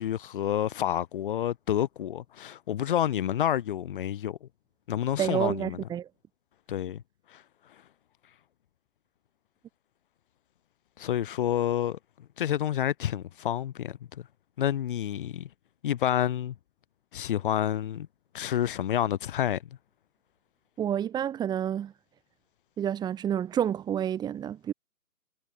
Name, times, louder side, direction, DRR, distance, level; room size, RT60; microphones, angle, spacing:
voice 1, 0.0-4.5 4.9-5.8 6.7-7.0 7.3-7.4 11.0-12.0 12.4-14.3 14.6-15.5 15.8-16.5 17.1-18.1 18.3-19.6, left 11 dB, 35° left, 7.9 m, -29 dB
voice 2, 5.2-6.1 20.8-21.9 22.8-24.7, right 9 dB, 10° right, 6.5 m, -29 dB
hypercardioid pair, 160°, 44 cm